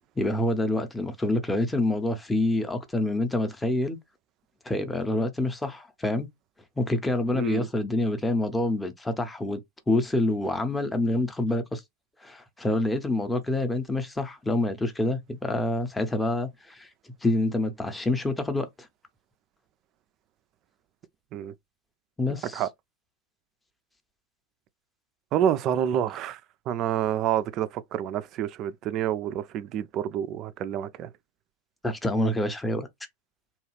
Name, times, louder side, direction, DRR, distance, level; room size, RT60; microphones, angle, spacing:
voice 1, 0.2-4.0 4.6-6.3 6.8-9.6 9.9-11.8 12.2-16.9 17.2-18.7 22.2-22.7 31.8-32.9, left 2 dB, 10° left, 0.6 m, -27 dB
voice 2, 7.3-7.7 21.3-21.5 22.5-22.7 25.3-26.4 26.7-31.1, right 10 dB, 35° right, 0.3 m, -28 dB
2.9 x 2.3 x 3.1 m
figure-of-eight pair, 90°, 0 cm